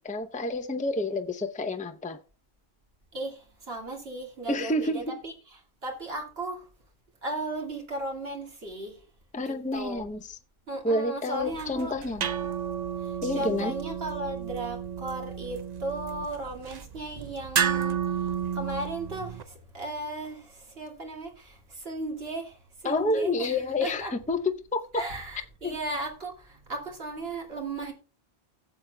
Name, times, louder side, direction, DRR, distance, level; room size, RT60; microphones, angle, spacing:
voice 1, 0.0-2.2 4.5-5.2 9.3-10.2 10.8-12.3 13.2-13.7 22.8-25.1 25.6-25.7, left 2 dB, 10° left, 0.6 m, -29 dB
voice 2, 3.1-5.3 5.8-6.7 7.2-9.1 9.4-10.0 10.7-12.0 13.0-24.1 24.9-27.9, right 2 dB, 75° right, 2.5 m, -36 dB
sound 1, 11.4-19.4, right 8 dB, 50° right, 0.6 m, -32 dB
17.0 x 7.4 x 2.2 m
omnidirectional pair, 1.0 m